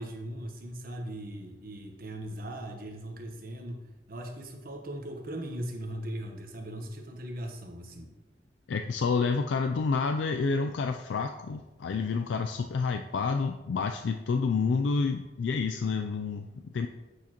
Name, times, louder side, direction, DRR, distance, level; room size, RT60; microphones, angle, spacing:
voice 1, 0.0-8.1, right 1 dB, 55° right, 2 dB, 1.1 m, -39 dB
voice 2, 8.7-16.9, left 4 dB, 75° left, 6 dB, 0.4 m, -29 dB
8.3 x 6.4 x 2.9 m, 1.1 s
head